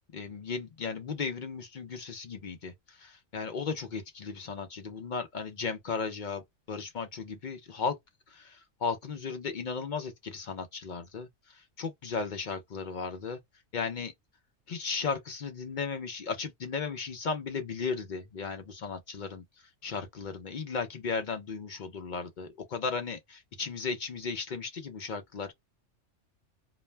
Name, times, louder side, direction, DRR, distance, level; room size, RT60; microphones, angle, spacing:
voice 1, 0.1-6.4 6.7-8.0 8.3-13.4 13.7-14.1 14.7-19.4 19.8-25.5, left 5 dB, 55° left, 0.6 m, -35 dB
2.4 x 2.1 x 3.2 m
omnidirectional pair, 1.3 m